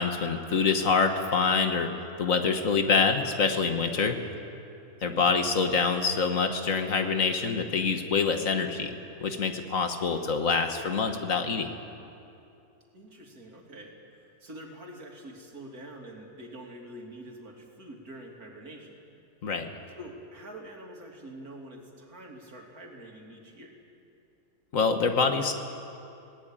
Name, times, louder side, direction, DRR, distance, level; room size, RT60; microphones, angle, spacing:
voice 1, 0.0-1.9 2.2-4.2 5.0-11.7 19.4-19.7 24.7-25.5, left 5 dB, 65° left, 6 dB, 1.8 m, -26 dB
voice 2, 5.0-5.4 12.9-19.1 20.0-23.8, right 1 dB, 80° right, 0 dB, 3.3 m, -46 dB
20.5 x 18.0 x 8.9 m, 2.6 s
omnidirectional pair, 1.5 m